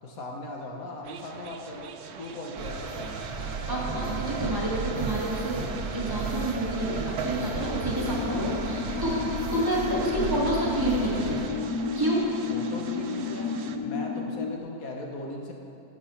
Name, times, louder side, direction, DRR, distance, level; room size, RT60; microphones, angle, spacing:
voice 1, 0.0-3.1 3.7-4.4 12.5-13.5 13.8-15.5, left 2 dB, 65° left, 0 dB, 1.6 m, -39 dB
sound 1, 1.0-13.8, right 7 dB, 60° right, 0.7 m, -44 dB
sound 2, 2.6-11.5, right 4 dB, 80° right, 1.5 m, -33 dB
voice 2, 3.7-5.6 5.9-11.5 12.0-12.3, right 1 dB, 15° right, -6 dB, 2.2 m, -29 dB
sound 3, 8.0-14.6, left 5 dB, 90° left, 1.1 m, -32 dB
12.0 x 8.2 x 5.7 m, 2.7 s
omnidirectional pair, 1.6 m